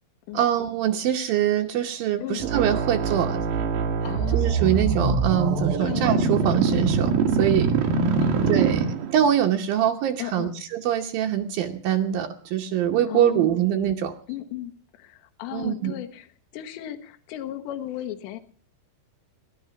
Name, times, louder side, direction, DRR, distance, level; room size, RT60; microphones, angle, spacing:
voice 1, 0.3-3.4 4.3-7.1 7.4-7.7 8.5-14.1 15.5-15.9, right 10 dB, 80° right, 4 dB, 2.0 m, -24 dB
sound 1, 2.4-9.3, right 5 dB, 60° right, 2.9 m, -23 dB
voice 2, 4.0-4.5 5.8-6.1 8.2-8.6 10.2-10.5 13.1-13.6 14.3-14.7 15.0-18.4, left 13 dB, 75° left, 6 dB, 3.1 m, -35 dB
15.5 x 11.5 x 7.0 m, 0.42 s
omnidirectional pair, 5.6 m